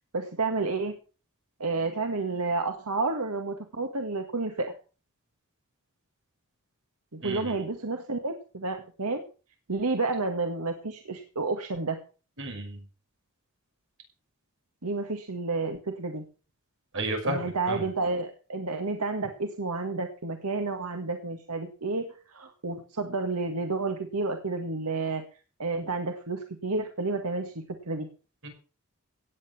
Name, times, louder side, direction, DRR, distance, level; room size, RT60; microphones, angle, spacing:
voice 1, 0.1-1.0 1.6-4.7 7.1-9.2 9.7-12.0 14.8-16.2 17.2-25.2 25.6-28.1, right 3 dB, 85° right, 5 dB, 1.8 m, -30 dB
voice 2, 7.2-7.5 12.4-12.8 16.9-17.9 28.4-28.5, right 1 dB, 60° right, 4 dB, 5.8 m, -32 dB
17.0 x 9.2 x 6.1 m, 0.36 s
head